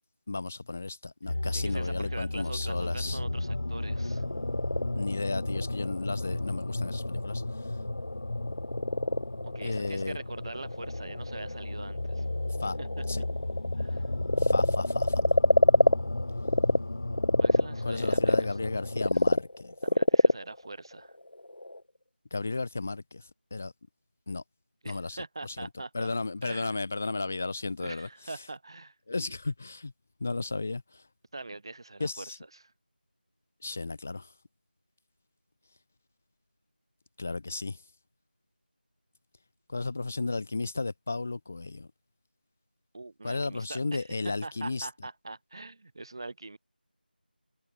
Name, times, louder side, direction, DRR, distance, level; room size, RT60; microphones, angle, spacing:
voice 1, 0.3-3.2 5.0-7.4 9.6-10.2 12.6-12.8 13.1-13.2 14.4-15.4 17.8-19.7 22.3-23.3 23.5-23.7 24.3-24.4 24.8-25.2 25.4-25.7 25.9-28.1 29.1-29.9 30.2-31.0 32.0-32.4 33.6-34.3 37.2-37.8 39.7-41.9 43.2-44.9, left 3 dB, 10° left, 0.6 m, -34 dB
sound 1, 1.3-19.1, left 2 dB, 35° left, 1.0 m, -34 dB
voice 2, 1.5-4.2 9.4-12.3 12.8-13.1 13.8-14.1 17.4-18.8 19.1-19.2 19.8-21.2 24.8-26.1 26.4-26.8 27.8-28.9 31.3-32.7 42.9-46.6, right 2 dB, 25° right, 2.1 m, -43 dB
Frog, 3.9-16.8 17.1-21.8, left 1 dB, 90° left, 1.3 m, -27 dB
figure-of-eight pair, 175°, 5 cm